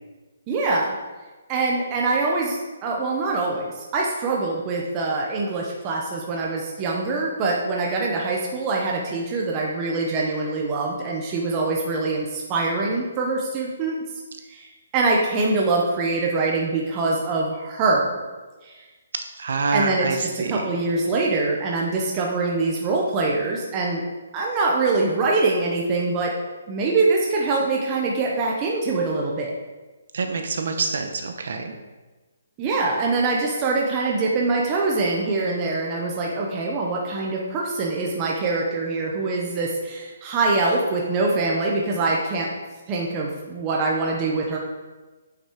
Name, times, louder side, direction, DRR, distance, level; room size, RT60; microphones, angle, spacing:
voice 1, 0.5-1.0 1.5-14.0 14.5-18.2 18.6-18.8 19.7-24.0 24.3-26.3 26.7-29.5 32.6-42.5 42.9-44.6, right 3 dB, 15° right, -2 dB, 0.6 m, -24 dB
voice 2, 19.4-20.6 30.1-31.7, right 4 dB, 50° right, 5 dB, 1.0 m, -26 dB
8.2 x 5.8 x 4.4 m, 1.2 s
hypercardioid pair, 180°, 0 cm